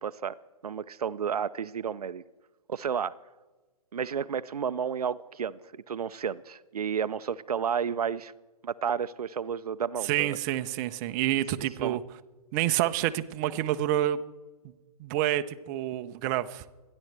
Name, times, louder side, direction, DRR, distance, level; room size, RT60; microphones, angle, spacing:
voice 1, 0.0-0.4 0.6-2.2 2.7-3.1 3.9-8.3 8.6-10.4 11.8-12.0, right 7 dB, 85° right, 15 dB, 0.5 m, -31 dB
voice 2, 10.0-12.0 12.5-14.2 15.0-16.6, right 13 dB, 30° right, 10 dB, 0.6 m, -28 dB
25.5 x 10.5 x 3.3 m, 1.3 s
hypercardioid pair, 135°, 19 cm